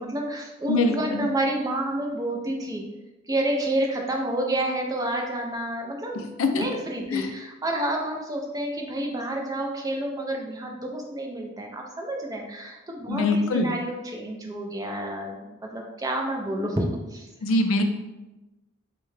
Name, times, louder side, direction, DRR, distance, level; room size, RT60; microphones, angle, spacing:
voice 1, 0.0-2.8 3.3-17.3, right 1 dB, 15° right, 1 dB, 0.3 m, -29 dB
voice 2, 0.7-1.3 6.4-6.6 7.1-7.3 13.1-13.7 17.4-17.8, left 2 dB, 70° left, 6 dB, 0.3 m, -23 dB
3.6 x 2.1 x 3.1 m, 1.1 s
head